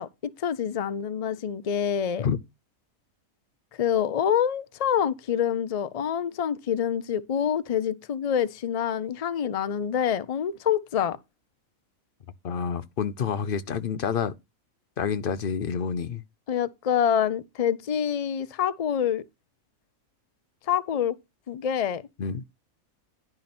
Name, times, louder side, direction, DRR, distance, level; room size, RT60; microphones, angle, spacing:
voice 1, 0.0-2.3 3.8-11.2 16.5-19.2 20.7-21.2 21.5-22.0, left 8 dB, 80° left, 0.3 m, -26 dB
voice 2, 12.4-14.3 15.0-16.2 22.2-22.4, left 7 dB, 50° left, 0.7 m, -28 dB
10.5 x 6.3 x 4.3 m
omnidirectional pair, 1.5 m